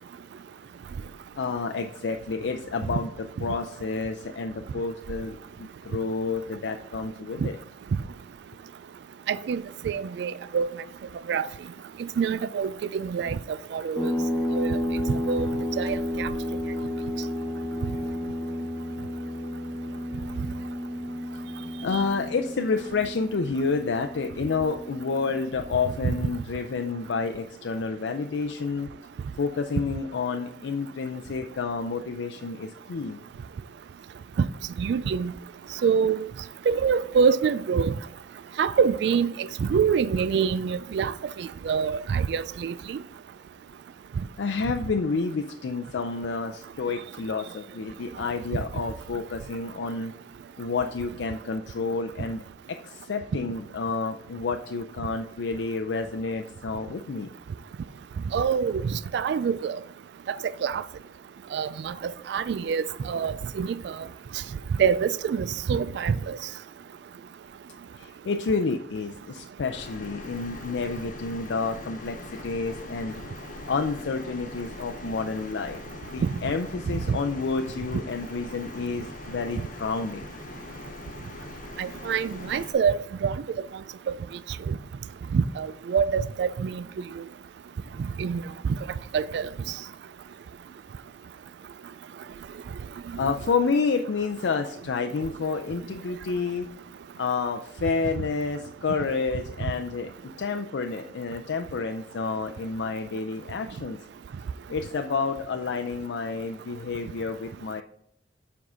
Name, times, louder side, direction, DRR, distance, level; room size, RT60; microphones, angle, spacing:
voice 1, 1.4-7.6 21.8-28.9 29.4-33.2 44.4-50.1 50.6-52.4 52.7-57.3 68.0-73.2 73.7-80.3 93.2-96.7 97.2-104.0 104.7-107.8, left 4 dB, 80° left, 0.4 m, -29 dB
voice 2, 9.3-10.7 11.3-11.5 12.2-14.1 14.5-14.8 15.1-15.5 15.8-16.3 21.9-22.0 26.0-26.2 34.8-35.3 35.8-36.3 36.7-37.9 38.6-41.1 41.4-43.0 58.3-59.8 60.3-60.4 60.6-60.8 61.5-64.0 64.8-66.4 76.2-76.3 77.1-77.2 81.8-83.4 84.7-84.8 85.3-86.8 88.2-88.4 89.1-89.5, right 6 dB, 70° right, 0.3 m, -25 dB
sound 1, 14.0-27.1, left 1 dB, 15° left, 0.8 m, -32 dB
sound 2, 69.7-82.7, left 2 dB, 50° left, 0.7 m, -42 dB
7.2 x 4.6 x 3.7 m
head